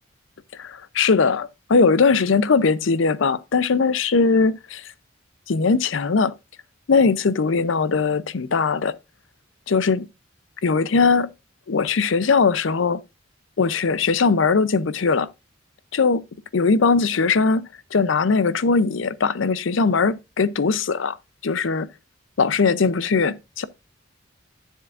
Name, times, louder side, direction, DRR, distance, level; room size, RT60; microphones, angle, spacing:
voice 1, 0.6-4.8 5.5-6.3 6.9-8.9 9.7-10.1 10.6-11.3 11.7-13.0 13.6-15.3 15.9-16.2 16.5-21.2 21.4-21.9 22.4-23.6, left 4 dB, 70° left, 0.6 m, -20 dB
11.0 x 7.3 x 2.5 m
head